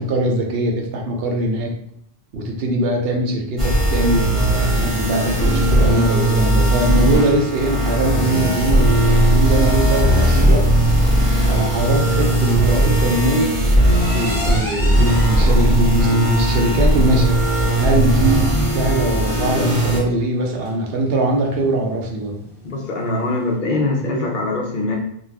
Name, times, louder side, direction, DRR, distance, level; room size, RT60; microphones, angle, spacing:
voice 1, 0.0-1.7 2.3-10.7 11.4-13.6 14.1-17.4 17.8-22.4, right 1 dB, 70° right, 1 dB, 0.8 m, -21 dB
sound 1, 3.6-20.0, right 1 dB, 35° right, 1.0 m, -17 dB
sound 2, 13.8-23.6, left 1 dB, 10° left, 1.1 m, -38 dB
voice 2, 22.6-25.0, left 2 dB, 60° left, -1 dB, 0.7 m, -22 dB
2.4 x 2.3 x 3.2 m, 0.68 s
omnidirectional pair, 1.0 m